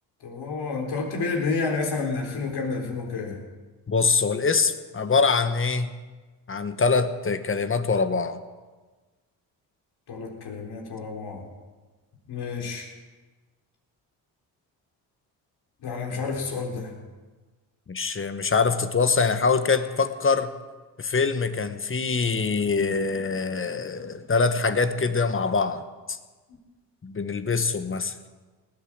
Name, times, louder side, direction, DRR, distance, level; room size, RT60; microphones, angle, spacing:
voice 1, 0.2-3.4 10.1-11.4 12.3-12.9 15.8-17.0, left 4 dB, 60° left, 1 dB, 3.7 m, -30 dB
voice 2, 3.9-5.9 6.5-8.4 17.9-20.5 21.0-25.8 26.1-26.2 27.0-28.1, left 4 dB, 30° left, 10 dB, 1.2 m, -24 dB
18.5 x 8.4 x 7.4 m, 1.3 s
supercardioid pair, 75°, 43 cm